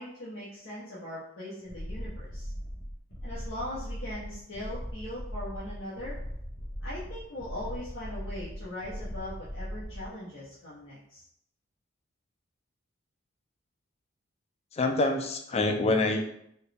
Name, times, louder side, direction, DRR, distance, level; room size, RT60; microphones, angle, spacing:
voice 1, 0.0-2.5 3.2-6.2 6.8-11.3, left 1 dB, 80° left, -10 dB, 1.0 m, -40 dB
sound 1, 1.7-10.1, equal, 60° left, 1.3 m, -39 dB
voice 2, 14.7-16.3, left 2 dB, 30° left, 4 dB, 0.4 m, -26 dB
4.3 x 2.3 x 3.4 m, 0.73 s
head